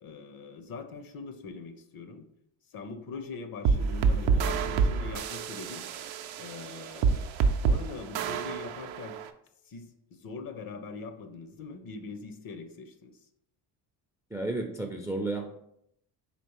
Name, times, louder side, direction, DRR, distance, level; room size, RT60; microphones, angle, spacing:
voice 1, 0.0-2.3 2.7-5.9 6.4-7.3 7.6-9.2 9.7-13.1, left 4 dB, 45° left, 8 dB, 0.6 m, -42 dB
sound 1, 3.7-9.3, right 5 dB, 70° right, 0.5 m, -28 dB
voice 2, 14.3-15.5, right 2 dB, 5° right, 4 dB, 0.3 m, -32 dB
4.3 x 3.1 x 3.0 m, 0.73 s
supercardioid pair, 75°, 49 cm